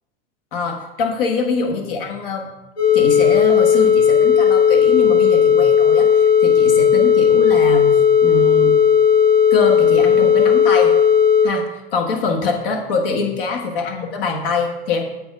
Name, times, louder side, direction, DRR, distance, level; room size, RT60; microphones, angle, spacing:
voice 1, 0.5-2.5 2.9-8.8 9.5-10.9 11.4-15.0, left 4 dB, 60° left, 3 dB, 1.5 m, -24 dB
sound 1, 2.8-11.5, left 7 dB, 90° left, 2.4 m, -14 dB
7.7 x 4.6 x 4.8 m, 1.0 s
hypercardioid pair, 130°, 31 cm